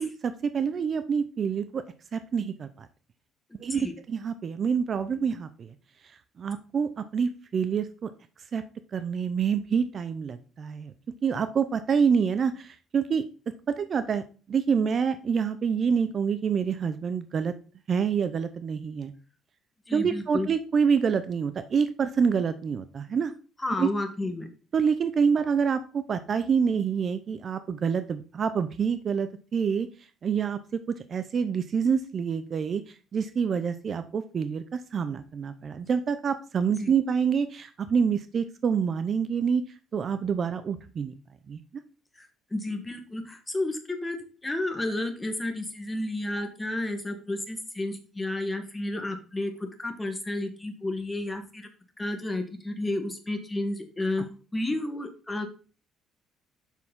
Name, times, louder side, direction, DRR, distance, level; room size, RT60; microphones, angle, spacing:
voice 1, 0.0-1.8 2.1-2.9 3.6-5.7 6.4-8.1 8.5-8.6 8.9-10.9 11.2-13.2 13.7-17.5 17.9-19.1 19.9-23.3 23.8-23.9 24.7-29.9 30.2-39.6 39.9-41.1 41.5-41.6, right 6 dB, 40° right, 11 dB, 0.5 m, -27 dB
voice 2, 19.9-20.5 23.6-24.5 36.8-36.9 42.2-44.2 44.4-51.7 52.0-55.5, left 2 dB, 10° left, 5 dB, 1.4 m, -31 dB
7.1 x 6.2 x 3.7 m, 0.36 s
cardioid pair, 135°, 0 cm